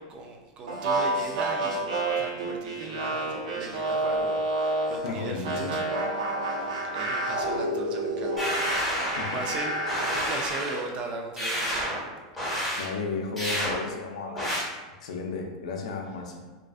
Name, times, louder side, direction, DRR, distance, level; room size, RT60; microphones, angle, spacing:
voice 1, 0.0-6.1 6.5-9.0 9.3-9.7 10.1-12.0, right 3 dB, 30° right, 2 dB, 0.3 m, -38 dB
sound 1, 0.7-5.0 5.4-10.3, right 2 dB, 80° right, 0.5 m, -29 dB
voice 2, 5.0-5.8 9.1-9.4 12.8-14.7 15.0-16.4, left 4 dB, 85° left, 2 dB, 0.4 m, -34 dB
sound 2, 8.4-9.5 9.9-10.8 11.4-12.0 12.4-12.9 13.4-13.7 14.4-14.6, equal, ahead, 0.8 m, -29 dB
2.4 x 2.3 x 2.4 m, 1.3 s
supercardioid pair, 145°, 3 cm